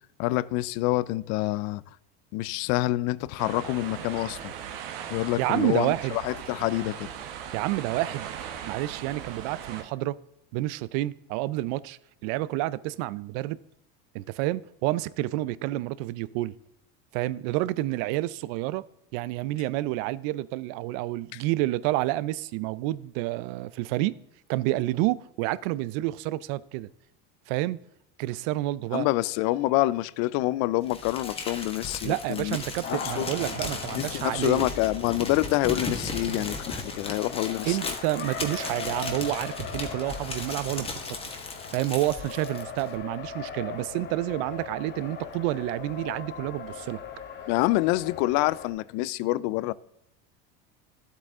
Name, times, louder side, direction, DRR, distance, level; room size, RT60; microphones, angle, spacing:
voice 1, 0.2-1.8 2.3-4.5 5.1-7.1 21.3-21.4 28.9-32.6 32.9-33.3 33.9-37.9 47.5-49.7, left 18 dB, 65° left, 0.5 m, -27 dB
sound 1, 3.4-9.8, right 9 dB, 85° right, 1.2 m, -39 dB
voice 2, 5.4-6.2 7.5-8.3 8.7-10.2 10.5-13.6 14.1-16.5 17.1-18.8 19.1-24.2 24.5-26.9 27.5-27.8 28.2-29.1 32.0-34.7 36.3-36.4 37.7-41.2 41.7-47.0, right 17 dB, 65° right, 0.5 m, -29 dB
Crumpling crinkling, 30.9-42.9, left 3 dB, 20° left, 1.5 m, -36 dB
Race car auto racing, 32.8-48.7, left 6 dB, 35° left, 1.3 m, -39 dB
11.5 x 8.2 x 3.6 m
supercardioid pair, 130°, 30 cm